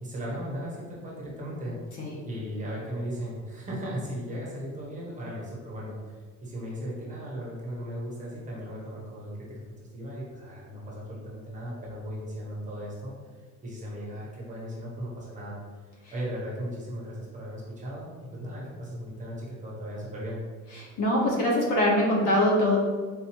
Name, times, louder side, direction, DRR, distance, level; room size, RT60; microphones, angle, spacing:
voice 1, 0.0-1.8 2.2-6.0 6.4-9.6 9.9-13.1 13.6-15.6 16.1-20.4, equal, 25° right, -5 dB, 0.9 m, -37 dB
voice 2, 20.7-22.8, left 1 dB, 75° left, -2 dB, 1.0 m, -23 dB
4.0 x 2.6 x 2.9 m, 1.5 s
cardioid pair, 150°, 31 cm